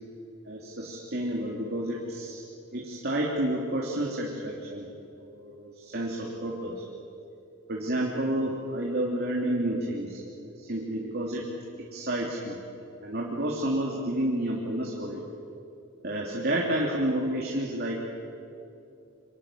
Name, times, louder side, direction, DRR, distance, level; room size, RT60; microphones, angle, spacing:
voice 1, 0.4-2.4 2.7-4.9 5.2-6.8 7.7-11.5 11.8-12.6 12.9-15.2 16.0-18.0, right 1 dB, 50° right, -2 dB, 3.1 m, -30 dB
28.0 x 25.5 x 7.5 m, 2.7 s
head